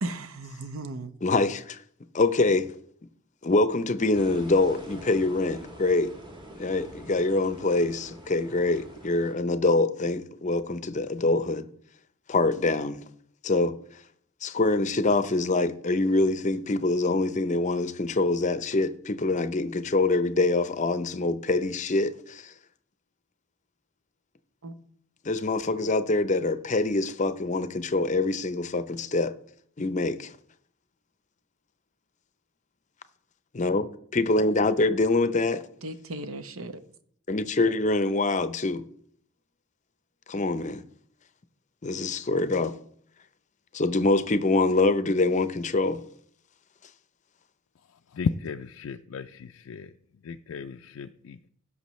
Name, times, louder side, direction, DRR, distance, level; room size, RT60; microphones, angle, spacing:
voice 1, 0.0-1.1 24.6-24.7 35.8-36.8, right 2 dB, 85° right, 0.9 m, -35 dB
voice 2, 1.2-1.8 2.1-2.7 3.4-6.1 6.6-11.7 12.3-13.0 13.4-13.8 14.4-22.5 25.2-29.3 29.8-30.3 33.5-35.6 37.3-38.8 40.3-40.8 41.8-42.7 43.7-46.0, left 2 dB, 35° left, 0.6 m, -25 dB
sound 1, 4.1-9.3, right 1 dB, 20° right, 1.3 m, -45 dB
voice 3, 48.1-49.9 50.2-51.5, left 5 dB, 80° left, 0.4 m, -34 dB
16.5 x 6.3 x 3.1 m
head